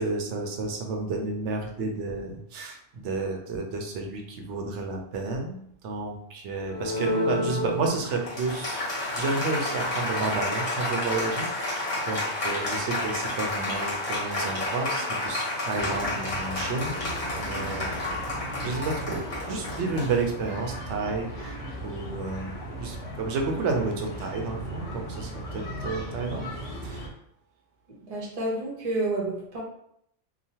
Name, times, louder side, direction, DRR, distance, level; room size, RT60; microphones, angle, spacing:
voice 1, 0.0-5.6 5.8-8.8 9.2-18.2 18.6-26.5 26.8-27.1, right 3 dB, 70° right, 2 dB, 0.9 m, -31 dB
Applause, 6.7-20.7, left 2 dB, 30° left, 0.9 m, -30 dB
sound 1, 15.7-27.1, right 1 dB, 80° left, 1.1 m, -37 dB
voice 2, 27.9-29.6, right 2 dB, 40° right, -4 dB, 0.6 m, -30 dB
2.9 x 2.1 x 2.7 m, 0.71 s
omnidirectional pair, 1.3 m